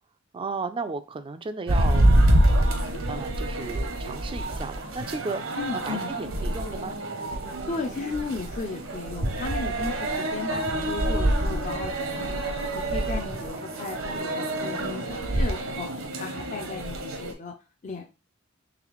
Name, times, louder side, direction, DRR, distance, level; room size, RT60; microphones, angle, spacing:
voice 1, 0.3-2.0 3.1-7.0, right 4 dB, 25° right, 10 dB, 0.3 m, -34 dB
sound 1, 1.7-17.3, right 1 dB, 75° right, 0.8 m, -26 dB
voice 2, 5.6-6.2 7.7-15.9 16.2-17.5 17.8-18.0, left 4 dB, 35° left, 2 dB, 0.5 m, -35 dB
4.0 x 3.2 x 3.0 m, 0.31 s
head